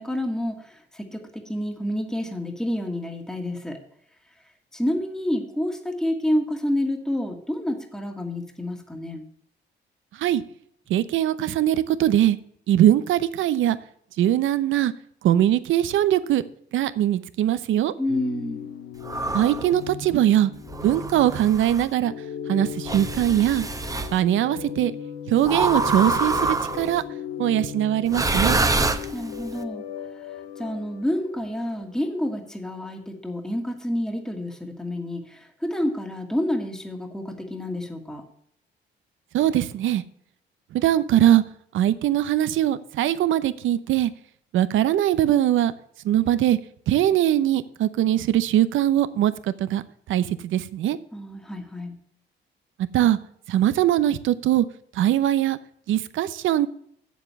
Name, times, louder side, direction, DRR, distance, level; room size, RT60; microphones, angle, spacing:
voice 1, 0.0-3.8 4.7-9.2 18.0-18.6 29.1-29.9 30.2-38.2 51.1-52.0, left 1 dB, 5° left, 2 dB, 1.6 m, -29 dB
voice 2, 10.9-12.4 12.7-13.8 14.2-14.9 15.2-16.4 16.7-17.9 19.3-20.5 20.8-22.1 22.5-23.7 24.1-24.9 25.3-27.0 27.4-28.6 39.3-40.0 40.7-41.4 41.7-44.1 44.5-45.7 46.0-46.6 46.9-49.8 50.1-51.0 52.9-53.2 53.5-54.7 54.9-55.6 55.9-56.7, right 12 dB, 80° right, 14 dB, 0.7 m, -21 dB
sound 1, 18.1-32.4 32.7-32.8, left 7 dB, 75° left, 0.9 m, -38 dB
sound 2, 19.0-19.7 20.7-21.9 22.8-24.1 25.4-27.0 28.1-29.5, right 3 dB, 15° right, 0.9 m, -26 dB
7.9 x 7.4 x 6.9 m, 0.67 s
cardioid pair, 90°, 20 cm